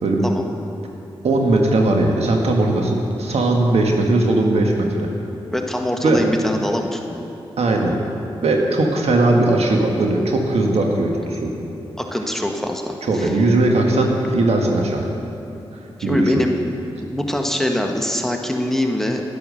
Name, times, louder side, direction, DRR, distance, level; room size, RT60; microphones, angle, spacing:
voice 1, 1.2-5.1 6.0-6.2 7.6-8.0 8.4-11.5 13.1-15.1 15.7-16.4, right 2 dB, 75° right, 1 dB, 1.6 m, -18 dB
voice 2, 5.5-7.3 12.0-13.3 16.0-16.5 17.0-19.2, left 1 dB, 5° left, 2 dB, 1.4 m, -23 dB
10.5 x 10.5 x 6.4 m, 2.9 s
cardioid pair, 45°, 11 cm